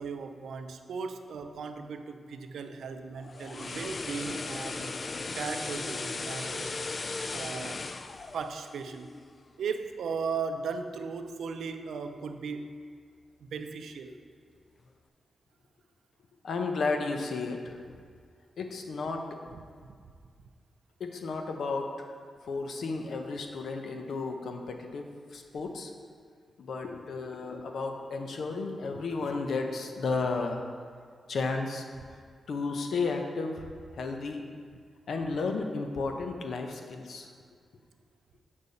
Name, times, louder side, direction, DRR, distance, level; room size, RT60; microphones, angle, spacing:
voice 1, 0.0-4.9 5.3-6.9 7.3-7.8 8.3-9.1 9.6-12.8 13.4-14.2 19.5-19.9, right 5 dB, 85° right, 7 dB, 0.5 m, -37 dB
sound 1, 3.1-9.3 9.7-9.9, left 3 dB, 45° left, 0.4 m, -37 dB
voice 2, 16.4-17.8 18.6-19.4 21.0-22.1 22.4-25.9 26.6-30.6 31.3-31.8 32.5-34.4 35.1-37.3, left 3 dB, 80° left, 4 dB, 0.8 m, -33 dB
8.3 x 5.3 x 4.1 m, 2.1 s
cardioid pair, 70°, 0 cm